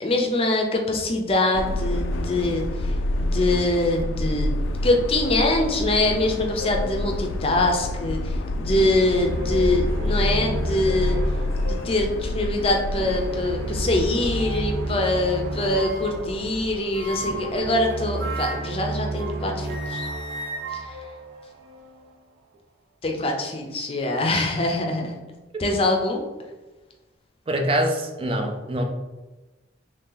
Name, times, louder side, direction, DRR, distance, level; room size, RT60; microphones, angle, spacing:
voice 1, 0.0-4.5 4.8-11.2 11.6-20.1 20.7-21.0 23.0-25.1 25.6-26.2, left 2 dB, 30° left, 2 dB, 0.5 m, -24 dB
Subway metro underground, 1.5-17.7, left 1 dB, 90° left, 0.3 m, -28 dB
sound 1, 6.6-7.0 7.7-7.8 9.1-9.8 10.2-10.4 10.8-11.0 11.6-11.9 12.6-13.3 14.3-14.8 15.7-16.3 16.9-19.4 19.7-22.0, left 1 dB, 70° right, 0.8 m, -36 dB
sound 2, 8.7-21.8, right 2 dB, 90° right, 0.4 m, -32 dB
voice 2, 27.5-28.8, right 1 dB, 30° right, 3 dB, 0.5 m, -24 dB
3.2 x 2.8 x 3.8 m, 1.2 s
head